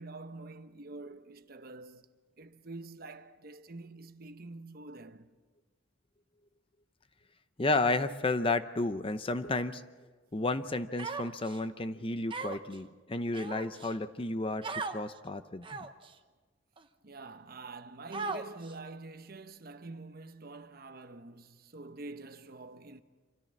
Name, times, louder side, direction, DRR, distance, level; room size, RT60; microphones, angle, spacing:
voice 1, 0.0-2.1 2.4-5.3 17.0-23.0, right 3 dB, 50° right, 0.9 m, -46 dB
voice 2, 7.6-9.8 10.3-15.8, left 2 dB, 30° left, 0.7 m, -32 dB
Human voice, 11.0-11.6 12.3-12.7 13.3-13.9 14.6-15.0 15.6-16.1 16.8-16.9 18.1-18.7, right 4 dB, 25° right, 1.0 m, -37 dB
26.0 x 14.0 x 7.4 m
head